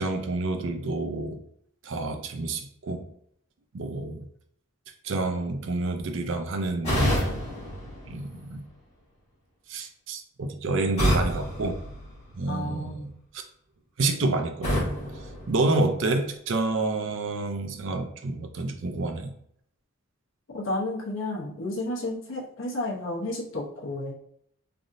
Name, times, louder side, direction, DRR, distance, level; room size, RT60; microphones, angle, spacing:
voice 1, 0.0-1.4 1.8-3.1 3.7-4.3 5.0-7.1 8.1-8.7 9.7-11.8 12.4-13.1 14.0-14.9 15.5-19.3, right 2 dB, 65° right, 5 dB, 0.4 m, -28 dB
sound 1, 6.8-8.8 11.0-12.7 14.6-16.2, equal, 30° left, 1.4 m, -29 dB
voice 2, 12.5-13.1 20.5-24.1, left 1 dB, 70° left, -3 dB, 0.8 m, -32 dB
3.3 x 2.6 x 2.5 m, 0.68 s
head